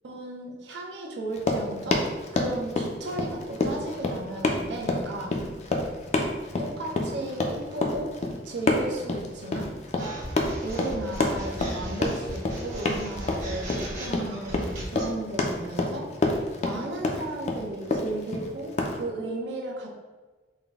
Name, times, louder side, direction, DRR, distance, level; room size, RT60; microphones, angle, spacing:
voice 1, 0.0-2.1 2.3-5.4 5.6-5.8 6.6-8.1 8.4-9.7 10.6-19.9, right 2 dB, 75° right, -1 dB, 0.7 m, -35 dB
Run, 1.3-19.0, left 2 dB, 35° left, 0.4 m, -28 dB
sound 1, 10.0-15.1, equal, 45° right, 0.9 m, -36 dB
3.7 x 2.1 x 3.5 m, 1.3 s
head